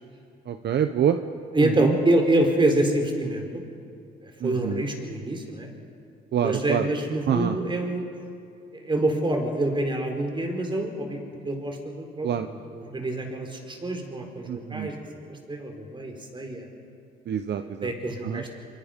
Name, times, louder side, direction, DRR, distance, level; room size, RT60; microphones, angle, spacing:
voice 1, 0.5-1.2 1.8-2.0 4.4-4.8 6.3-6.9 7.3-7.6 12.2-12.5 14.5-14.9 17.3-17.9 18.2-18.4, right 9 dB, 60° right, 9 dB, 0.9 m, -26 dB
voice 2, 1.5-3.6 4.2-5.7 6.4-8.0 8.7-11.2 11.4-14.9 15.2-16.7 17.6-18.6, right 1 dB, 25° right, 3 dB, 4.4 m, -26 dB
26.0 x 23.0 x 5.3 m, 2.5 s
cardioid pair, 90°, 20 cm